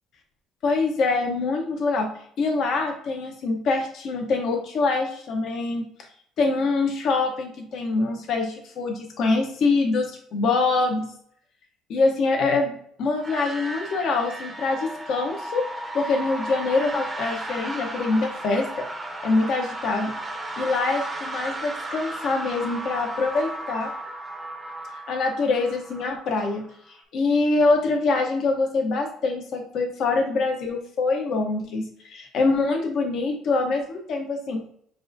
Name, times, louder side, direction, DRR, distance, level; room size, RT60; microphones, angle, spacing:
voice 1, 0.6-2.1 2.4-5.9 6.4-11.1 11.9-15.7 15.9-18.7 19.2-20.1 20.6-23.9 25.1-26.7 27.1-34.6, left 3 dB, 45° left, 3 dB, 0.7 m, -24 dB
sound 1, 13.2-26.9, right 1 dB, 10° right, 0.6 m, -35 dB
7.2 x 2.4 x 2.6 m, 0.64 s
cardioid pair, 165°, 0 cm